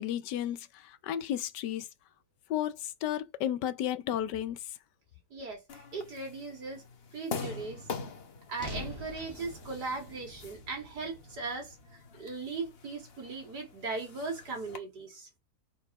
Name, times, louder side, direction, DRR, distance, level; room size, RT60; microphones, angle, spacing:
voice 1, 0.0-1.9 2.5-4.6, left 11 dB, 90° left, 1.3 m, -33 dB
voice 2, 5.3-6.8 7.1-7.8 8.5-11.7 12.1-15.3, right 3 dB, 75° right, 3.0 m, -38 dB
sound 1, 5.7-14.8, left 5 dB, 45° left, 1.0 m, -44 dB
sound 2, 8.6-12.8, left 1 dB, 15° right, 1.8 m, -47 dB
5.5 x 4.5 x 4.0 m
omnidirectional pair, 1.8 m